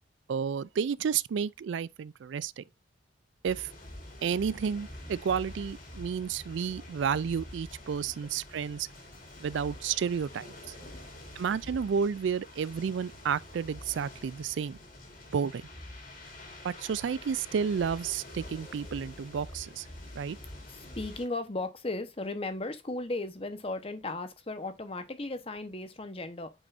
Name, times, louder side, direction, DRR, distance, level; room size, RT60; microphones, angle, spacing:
voice 1, 0.3-2.6 3.4-3.7 4.2-8.9 9.4-10.7 11.4-14.8 15.3-15.6 16.6-19.9 20.1-20.4, right 7 dB, 75° right, 0.3 m, -31 dB
sound 1, 3.5-21.3, left 1 dB, 50° left, 2.6 m, -47 dB
voice 2, 10.8-11.2 20.7-26.5, left 2 dB, 30° left, 1.0 m, -36 dB
8.7 x 5.3 x 2.5 m
head